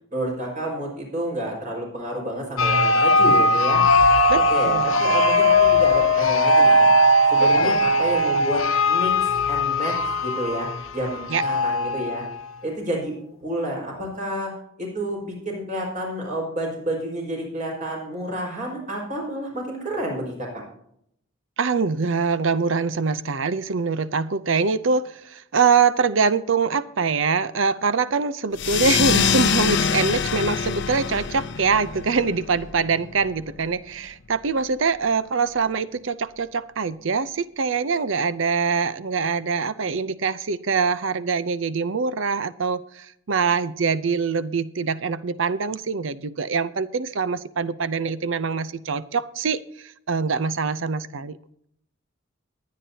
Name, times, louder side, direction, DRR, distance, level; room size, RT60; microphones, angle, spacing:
voice 1, 0.1-3.8 4.3-6.9 7.3-12.2 12.6-13.1 13.4-14.5 14.8-20.5, right 1 dB, 35° right, -1 dB, 5.2 m, -30 dB
sound 1, 2.6-12.3, left 1 dB, 75° left, 0.9 m, -19 dB
voice 2, 4.3-5.0 7.4-7.8 11.3-11.4 21.6-51.4, right 5 dB, 65° right, 15 dB, 0.6 m, -24 dB
sound 2, 28.5-33.6, left 6 dB, 55° left, 0.6 m, -25 dB
22.5 x 9.3 x 2.8 m, 0.72 s
head